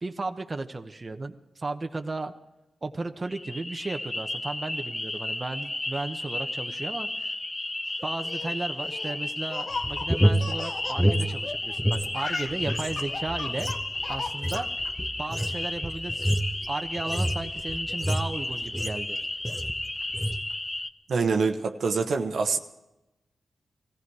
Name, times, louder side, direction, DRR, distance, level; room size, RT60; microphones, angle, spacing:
voice 1, 0.0-2.3 2.8-7.3 8.0-13.7 14.1-14.7 15.2-16.4 16.7-19.2, right 3 dB, 40° right, 6 dB, 1.0 m, -34 dB
sound 1, 3.2-20.9, left 2 dB, 30° left, 0.9 m, -33 dB
Laughter, 8.0-11.8 12.1-14.9, left 4 dB, 60° left, 0.9 m, -37 dB
sound 2, 9.7-12.1 12.4-19.1 19.4-19.8 20.1-20.4, equal, ahead, 1.5 m, -28 dB
voice 2, 21.1-22.6, right 4 dB, 75° right, 4 dB, 1.1 m, -25 dB
19.0 x 15.0 x 4.8 m, 0.97 s
cardioid pair, 45°, 0 cm